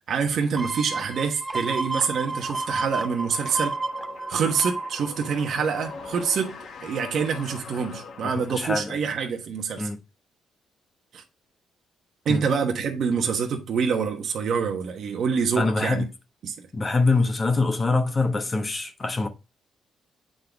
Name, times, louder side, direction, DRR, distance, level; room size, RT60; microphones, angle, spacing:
voice 1, 0.1-3.8 4.3-9.9 11.1-11.2 12.2-16.1 16.4-16.6, right 6 dB, 65° right, 1.1 m, -26 dB
sound 1, 0.6-6.1 6.5-6.6, right 3 dB, 20° right, 0.6 m, -32 dB
sound 2, 2.2-8.9, left 4 dB, 65° left, 1.2 m, -42 dB
voice 2, 8.2-9.0 9.8-10.0 12.3-12.4 15.6-16.1 16.7-19.3, left 3 dB, 25° left, 1.1 m, -24 dB
7.7 x 3.9 x 3.4 m
cardioid pair, 90°, 0 cm